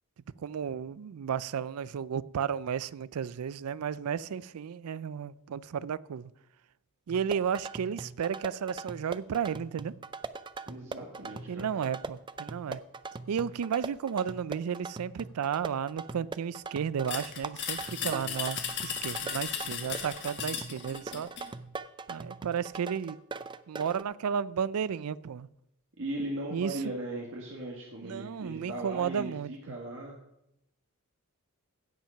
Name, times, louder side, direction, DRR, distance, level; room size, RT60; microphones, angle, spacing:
voice 1, 0.4-6.3 7.1-10.0 11.5-12.8 13.3-21.3 22.1-23.2 23.7-25.5 26.5-26.8 28.0-29.5, right 7 dB, 85° right, 0.4 m, -33 dB
sound 1, 7.1-24.0, right 4 dB, 20° right, 0.4 m, -41 dB
voice 2, 10.7-11.7 17.8-18.2 26.0-30.2, right 1 dB, 65° right, 1.8 m, -38 dB
Metal water bottle - shaking lid, 17.1-21.5, left 7 dB, 55° left, 1.6 m, -36 dB
16.5 x 5.9 x 5.7 m
head